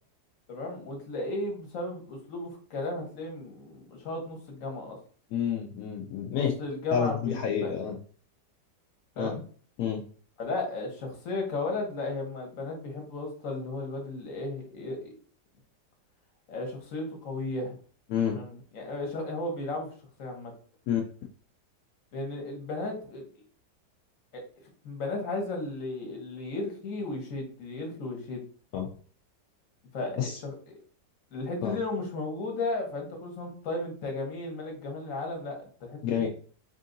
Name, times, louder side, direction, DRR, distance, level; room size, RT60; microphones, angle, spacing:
voice 1, 0.5-5.0 6.3-7.9 9.2-9.4 10.4-15.1 16.5-17.8 18.3-19.9 20.2-20.5 22.1-23.3 24.3-24.4 24.8-28.4 29.9-30.8 31.3-36.3, left 2 dB, 50° left, 2 dB, 1.3 m, -35 dB
voice 2, 5.3-6.5 6.9-8.0 9.2-9.4 9.8-10.0 18.1-18.4 20.9-21.0 28.7-28.9 30.2-30.4 31.6-31.8 36.0-36.3, left 8 dB, 70° left, 1 dB, 0.9 m, -29 dB
3.7 x 2.5 x 3.8 m, 0.43 s
omnidirectional pair, 1.9 m